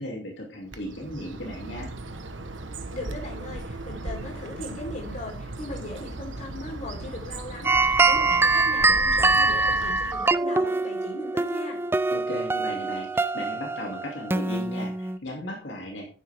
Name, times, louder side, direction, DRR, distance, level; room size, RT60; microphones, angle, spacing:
voice 1, 0.0-1.9 12.1-16.1, left 1 dB, 75° left, 0 dB, 2.7 m, -36 dB
Bird, 0.7-10.4, right 2 dB, 90° right, 1.2 m, -37 dB
voice 2, 2.9-11.8, left 2 dB, 40° left, -1 dB, 4.0 m, -38 dB
sound 1, 7.6-15.2, right 3 dB, 10° right, 0.4 m, -24 dB
10.0 x 9.6 x 3.6 m, 0.39 s
head